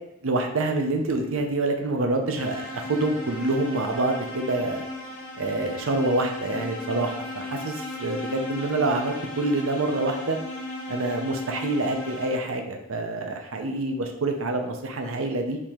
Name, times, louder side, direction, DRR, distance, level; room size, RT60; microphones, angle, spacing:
voice 1, 0.2-4.8 5.4-10.4 10.9-15.6, right 2 dB, 70° right, 4 dB, 0.6 m, -26 dB
sound 1, 2.4-12.7, left 2 dB, 75° left, 1.2 m, -36 dB
4.7 x 2.9 x 3.6 m, 0.85 s
head